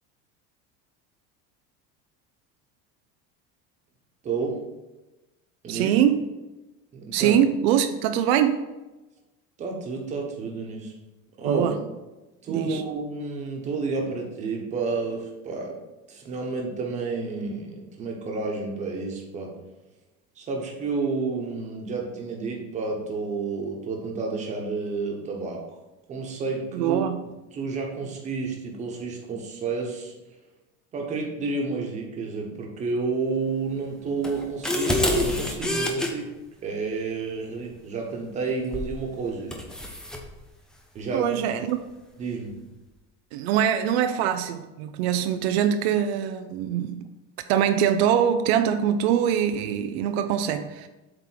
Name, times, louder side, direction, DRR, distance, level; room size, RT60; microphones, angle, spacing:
voice 1, 4.2-4.6 5.6-5.9 6.9-7.5 9.6-10.9 11.4-11.7 12.4-15.8 16.1-19.5 20.4-25.6 26.1-27.0 27.5-30.1 30.9-36.3 36.6-39.5 40.9-41.4 42.2-42.6, right 4 dB, 20° right, 0 dB, 1.2 m, -30 dB
voice 2, 5.7-6.2 7.1-8.6 11.4-11.8 12.5-12.8 26.7-27.3 41.1-41.8 43.3-47.0 47.5-50.9, right 9 dB, 80° right, 8 dB, 0.7 m, -23 dB
sound 1, 34.2-36.1 38.7-39.0 39.5-40.2, left 1 dB, ahead, 0.5 m, -26 dB
8.0 x 3.7 x 5.7 m, 1.1 s
cardioid pair, 175°, 31 cm